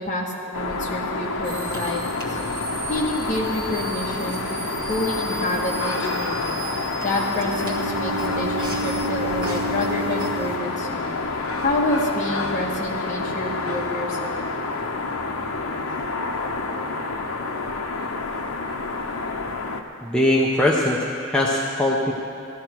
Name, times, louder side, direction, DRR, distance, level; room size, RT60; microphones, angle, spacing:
voice 1, 0.0-2.3 2.9-6.6 7.0-11.1 11.6-14.4, left 1 dB, 35° left, -3 dB, 1.8 m, -28 dB
sound 1, 0.5-19.8, left 3 dB, 80° left, 0.8 m, -28 dB
sound 2, 1.4-10.6, right 2 dB, 40° right, 1.7 m, -36 dB
Bowed string instrument, 7.4-11.4, right 2 dB, 70° right, 0.5 m, -31 dB
voice 2, 20.0-22.1, left 1 dB, 5° left, -4 dB, 0.8 m, -21 dB
16.5 x 12.5 x 4.6 m, 2.5 s
head